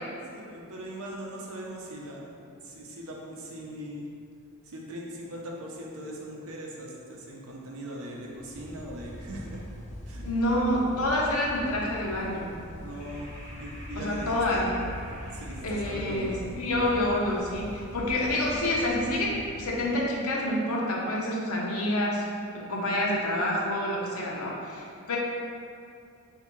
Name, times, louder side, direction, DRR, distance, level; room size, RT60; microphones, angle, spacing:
voice 1, 0.3-2.3 2.6-4.1 4.6-9.6 10.1-10.3 12.8-13.3 13.6-14.7 15.2-16.4, equal, 75° right, -2 dB, 0.7 m, -40 dB
sound 1, 8.3-20.2, equal, 30° left, 0.6 m, -42 dB
voice 2, 10.2-12.6 14.0-14.7 15.6-22.2 22.5-25.2, left 1 dB, 75° left, -3 dB, 0.8 m, -28 dB
3.5 x 2.8 x 4.4 m, 2.4 s
head